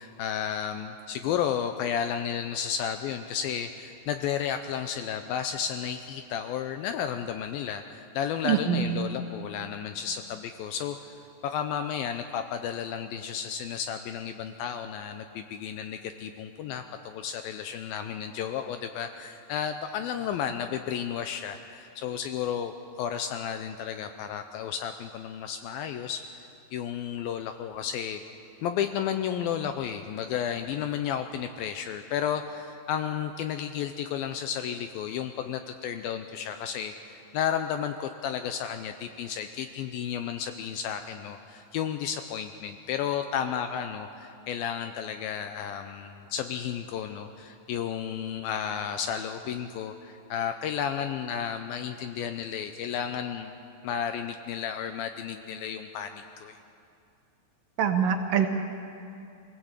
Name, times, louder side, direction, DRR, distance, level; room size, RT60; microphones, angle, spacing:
voice 1, 0.0-11.0 11.4-26.2 26.7-28.2 28.6-53.6 53.8-56.6, left 8 dB, 80° left, 8 dB, 2.2 m, -32 dB
voice 2, 8.4-9.1 57.8-58.5, right 8 dB, 70° right, 5 dB, 2.4 m, -24 dB
24.0 x 17.0 x 8.2 m, 2.6 s
omnidirectional pair, 4.8 m